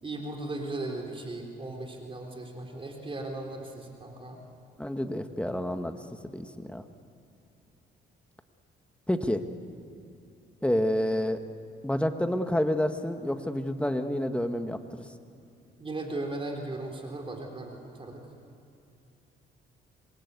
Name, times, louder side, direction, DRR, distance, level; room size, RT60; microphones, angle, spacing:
voice 1, 0.0-4.4 15.8-18.2, right 2 dB, 25° right, 1 dB, 3.8 m, -37 dB
voice 2, 4.8-6.0 6.3-6.8 9.1-9.4 10.6-11.4 11.8-15.0, left 1 dB, 5° left, 7 dB, 1.5 m, -29 dB
27.0 x 22.0 x 8.3 m, 2.8 s
cardioid pair, 90°, 20 cm